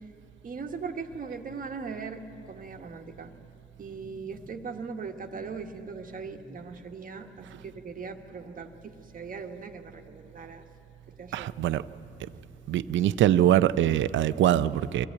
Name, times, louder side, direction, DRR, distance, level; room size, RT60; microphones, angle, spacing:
voice 1, 0.4-2.2 2.5-3.5 3.8-10.6 11.1-11.8 12.2-12.4, right 5 dB, 45° right, 4 dB, 1.4 m, -39 dB
voice 2, 11.3-11.8 12.7-15.1, right 11 dB, 75° right, 14 dB, 0.6 m, -23 dB
23.0 x 14.5 x 8.5 m, 2.9 s
cardioid pair, 90°, 20 cm